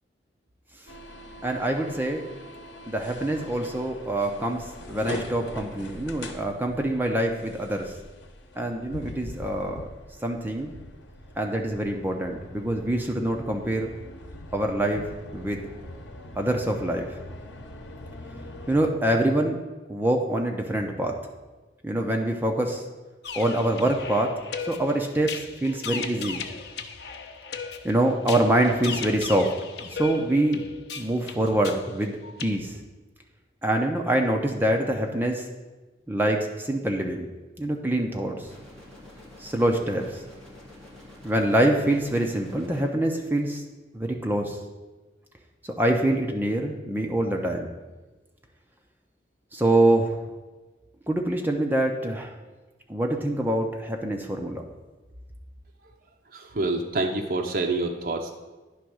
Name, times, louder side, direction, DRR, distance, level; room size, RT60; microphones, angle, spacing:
sound 1, 0.9-18.9, left 1 dB, 85° left, 0.9 m, -42 dB
voice 1, 1.4-2.2 2.9-7.9 8.6-9.9 10.2-10.7 11.4-13.9 14.5-15.1 15.3-15.7 16.4-17.1 18.7-19.6 19.9-21.1 21.8-22.8 23.3-24.3 24.7-26.4 27.8-29.5 29.8-30.6 31.0-32.8 33.6-35.5 36.1-37.3 37.6-38.5 39.4-40.2 41.2-43.6 43.9-44.6 45.8-47.7 49.5-50.2 51.1-52.3 52.9-54.6, right 1 dB, 10° right, 2 dB, 0.6 m, -25 dB
sound 2, 23.2-32.5, left 6 dB, 65° left, 0.6 m, -37 dB
sound 3, 38.4-42.8, left 1 dB, 5° left, 1.7 m, -47 dB
voice 2, 56.3-58.3, right 2 dB, 50° right, 2 dB, 0.6 m, -27 dB
10.0 x 3.5 x 6.2 m, 1.2 s
head